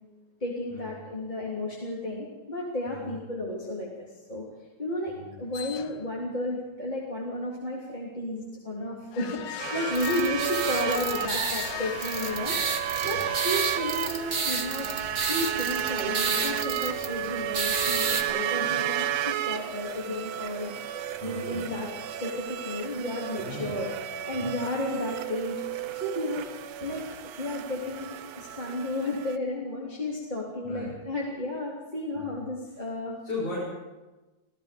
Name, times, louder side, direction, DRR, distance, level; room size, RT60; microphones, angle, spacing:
voice 1, 0.4-3.9 4.3-4.4 4.8-14.9 15.3-20.7 21.2-21.9 22.2-25.6 25.9-26.5 26.8-33.2, left 1 dB, 15° left, -5 dB, 3.1 m, -33 dB
sound 1, 5.5-6.3 9.1-13.0, left 13 dB, 80° left, 1.4 m, -38 dB
sound 2, 9.6-29.4, right 10 dB, 65° right, 1.8 m, -33 dB
sound 3, 9.9-18.2, right 4 dB, 35° right, 1.2 m, -32 dB
voice 2, 21.2-21.7 23.4-23.8 24.3-24.5 30.6-30.9 32.1-32.4 33.2-33.6, left 2 dB, 45° left, -8 dB, 8.6 m, -37 dB
29.0 x 17.0 x 5.3 m, 1.2 s
omnidirectional pair, 3.8 m